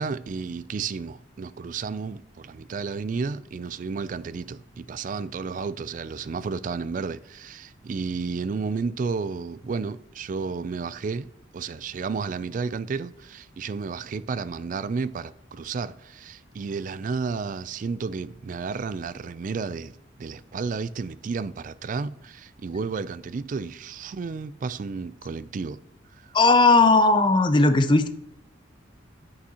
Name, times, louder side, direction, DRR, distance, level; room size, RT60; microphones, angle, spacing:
voice 1, 0.0-25.8 26.2-26.3, right 4 dB, 40° right, 0.3 m, -32 dB
voice 2, 26.3-28.1, left 3 dB, 25° left, 0.5 m, -17 dB
9.6 x 8.6 x 2.9 m
head